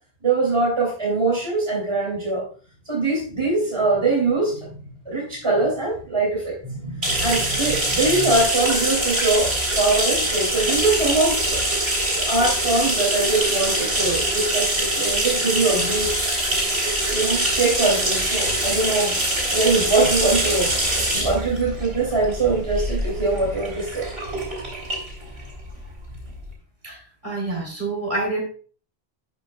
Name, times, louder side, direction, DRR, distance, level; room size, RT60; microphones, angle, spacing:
voice 1, 0.2-2.5 2.9-4.8 5.0-9.5 9.8-11.6 12.2-16.2 17.1-19.2 19.5-24.1, right 3 dB, 30° right, -3 dB, 2.9 m, -22 dB
sound 1, 7.0-26.4, right 1 dB, 75° right, 3.9 m, -24 dB
voice 2, 27.2-28.4, right 2 dB, 50° right, -2 dB, 3.6 m, -27 dB
12.5 x 6.1 x 2.3 m, 0.41 s
omnidirectional pair, 1.0 m